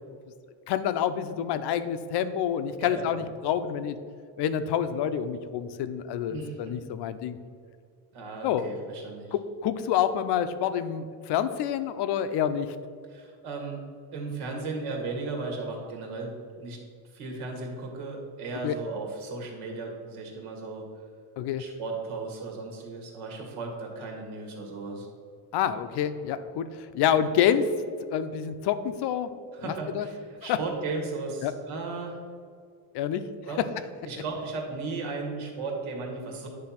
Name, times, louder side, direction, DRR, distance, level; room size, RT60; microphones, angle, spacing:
voice 1, 0.7-4.0 4.4-7.4 8.4-8.6 9.3-12.8 18.6-18.8 21.4-21.6 25.5-27.7 28.1-29.3 29.6-30.1 30.4-30.6 31.4-31.5 32.9-33.2 33.6-33.7, left 9 dB, 55° left, 11 dB, 0.5 m, -27 dB
voice 2, 2.8-3.2 6.3-6.7 8.1-9.3 13.1-13.8 14.1-16.8 17.1-20.9 21.6-25.1 29.5-32.2 33.5-33.6 34.0-36.5, right 3 dB, 85° right, 1 dB, 2.0 m, -36 dB
9.8 x 3.4 x 5.7 m, 2.2 s
cardioid pair, 160°, 48 cm